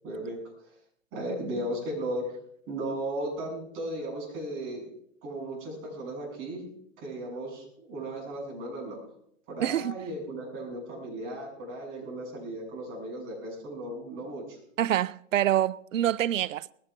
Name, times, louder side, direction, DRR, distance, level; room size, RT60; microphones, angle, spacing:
voice 1, 0.0-0.7 1.1-2.3 2.7-4.9 5.2-6.6 7.0-9.0 9.5-14.6, right 1 dB, 30° right, 8.0 m, -36 dB
voice 2, 9.6-9.9 14.8-16.7, right 12 dB, 75° right, 0.5 m, -26 dB
20.0 x 16.0 x 3.6 m
figure-of-eight pair, 115°, 39 cm